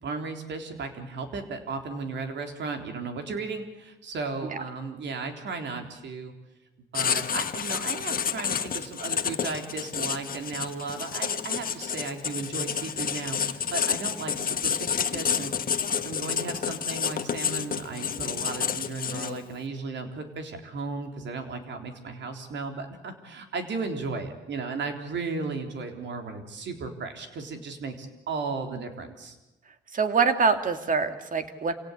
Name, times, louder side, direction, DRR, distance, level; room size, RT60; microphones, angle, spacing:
voice 1, 0.0-6.3 6.9-15.5 16.0-29.4, right 4 dB, 65° right, 5 dB, 3.8 m, -35 dB
Writing, 6.9-19.5, left 7 dB, 45° left, 1.4 m, -29 dB
voice 2, 29.9-31.7, right 5 dB, 40° right, 8 dB, 2.3 m, -24 dB
27.0 x 17.5 x 8.3 m, 1.0 s
cardioid pair, 90°, 20 cm